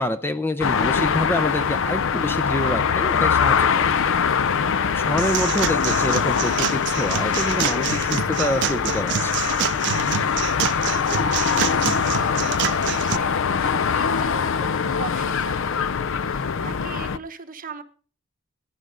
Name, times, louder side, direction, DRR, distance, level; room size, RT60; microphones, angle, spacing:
voice 1, 0.0-3.9 4.8-9.3, left 1 dB, 10° left, 10 dB, 0.5 m, -27 dB
sound 1, 0.6-17.2, left 6 dB, 65° left, 0.5 m, -23 dB
sound 2, 5.2-13.2, right 10 dB, 55° right, 0.4 m, -28 dB
voice 2, 10.9-17.8, right 4 dB, 40° right, 10 dB, 1.1 m, -39 dB
15.0 x 10.5 x 3.7 m, 0.41 s
head